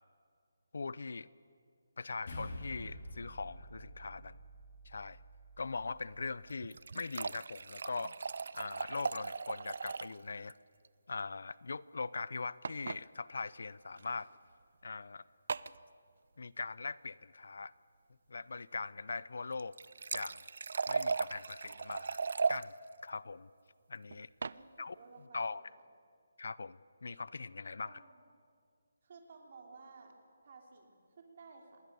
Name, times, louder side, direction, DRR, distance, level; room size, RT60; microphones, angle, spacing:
voice 1, 0.7-1.3 2.0-4.4 4.9-5.2 5.6-8.1 8.5-10.6 11.1-14.3 14.8-15.2 16.4-17.7 18.3-19.8 20.1-20.4 20.9-22.2 22.5-22.7 23.0-23.5 23.9-24.3 24.8-24.9 25.3-25.6 26.4-28.0, left 4 dB, 65° left, 20 dB, 0.6 m, -41 dB
sound 1, 2.3-6.8, left 1 dB, 50° left, 4.2 m, -49 dB
sound 2, 6.5-10.2 10.5-10.6 10.8-10.9 12.6-13.0 14.0-14.1 15.5-15.8 19.5-22.6 24.1-24.6, right 4 dB, 55° right, 0.5 m, -37 dB
voice 2, 24.4-25.8 27.8-28.2 29.0-31.8, right 4 dB, 40° right, 2 dB, 3.3 m, -56 dB
26.5 x 20.5 x 6.9 m, 2.3 s
hypercardioid pair, 175°, 0 cm